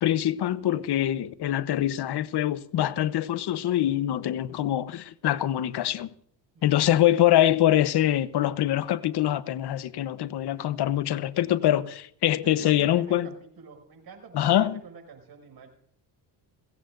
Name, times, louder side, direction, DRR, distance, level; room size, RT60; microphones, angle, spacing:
voice 1, 0.0-6.1 6.6-13.3 14.3-14.8, left 12 dB, 60° left, 1.0 m, -24 dB
voice 2, 6.5-6.9 12.4-15.7, right 5 dB, 50° right, 6.6 m, -47 dB
22.0 x 17.0 x 2.6 m
supercardioid pair, 70°, 46 cm